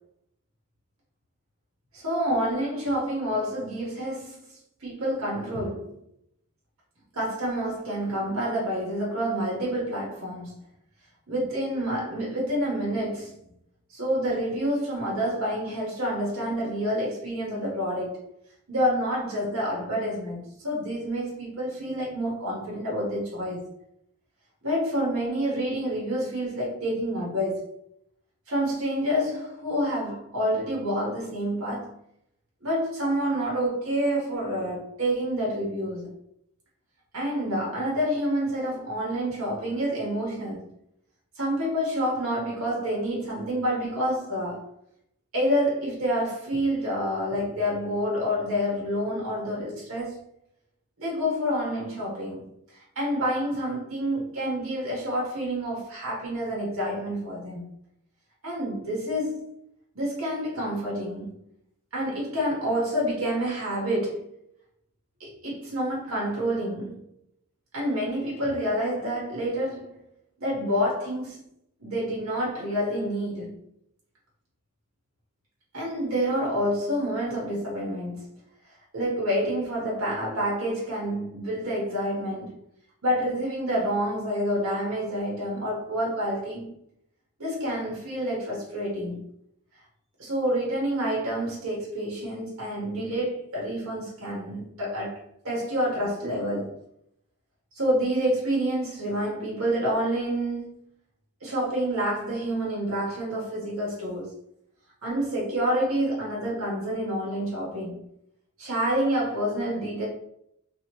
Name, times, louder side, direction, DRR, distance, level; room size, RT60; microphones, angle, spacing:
voice 1, 1.9-6.0 7.1-10.5 11.3-13.4 13.9-18.2 18.7-23.7 24.6-27.6 28.5-32.0 32.6-36.1 37.1-40.6 41.3-44.7 45.3-50.2 51.0-52.4 52.9-57.6 58.4-59.5 59.9-61.4 61.9-64.4 65.2-67.0 67.7-70.0 70.4-71.4 71.8-73.6 75.7-78.3 78.9-82.5 83.0-86.7 87.4-89.2 90.2-96.8 97.7-100.8 101.4-104.3 105.0-108.0 108.6-110.1, equal, 75° right, 1.2 m, -28 dB
3.0 x 2.7 x 2.9 m
head